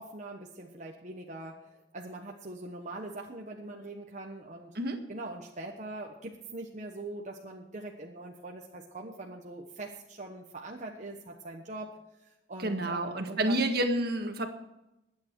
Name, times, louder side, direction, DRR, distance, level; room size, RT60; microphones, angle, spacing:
voice 1, 0.0-4.8 5.1-13.7, right 2 dB, 45° right, 1 dB, 1.2 m, -42 dB
voice 2, 12.6-14.5, right 1 dB, 60° right, 5 dB, 1.8 m, -29 dB
22.0 x 8.8 x 4.7 m, 0.92 s
head